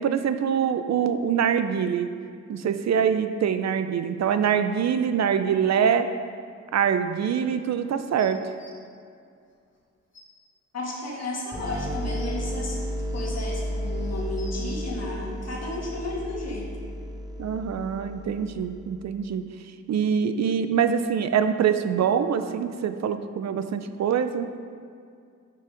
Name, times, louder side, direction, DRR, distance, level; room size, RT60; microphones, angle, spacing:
voice 1, 0.0-2.1 2.5-6.1 6.7-8.4 17.4-19.4 19.9-24.5, right 7 dB, 65° right, 10 dB, 0.4 m, -24 dB
sound 1, 8.2-8.7 9.8-9.9 10.1-10.2 10.8-10.9 11.7-12.3 13.0-13.6 14.1-14.8 15.8-15.9, left 2 dB, 40° left, 1.3 m, -49 dB
voice 2, 10.7-12.8 13.1-16.7, left 2 dB, 55° left, -3 dB, 1.7 m, -33 dB
sound 2, 11.5-19.1, equal, 15° right, 0.8 m, -33 dB
6.1 x 5.7 x 4.9 m, 2.3 s
wide cardioid pair, 105°, 30 cm